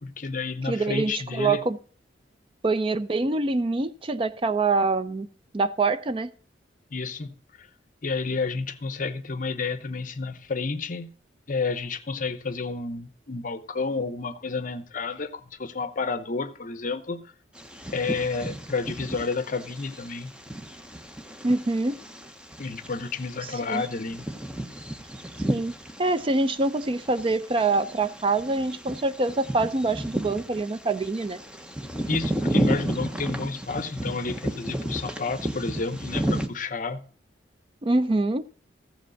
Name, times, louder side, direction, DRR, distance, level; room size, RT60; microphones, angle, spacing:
voice 1, 0.0-1.6 6.9-7.7 8.0-11.1 11.5-17.3 17.9-20.3 22.6-24.3 32.0-37.0, left 4 dB, 45° left, 0.8 m, -30 dB
voice 2, 0.7-1.8 2.6-5.3 5.5-6.3 21.4-22.0 23.4-23.8 25.5-25.7 26.0-31.4 37.8-38.4, right 3 dB, 30° right, 0.4 m, -25 dB
Bird vocalization bird call bird song, 17.6-36.5, right 1 dB, 5° right, 0.8 m, -33 dB
14.5 x 5.1 x 6.3 m
head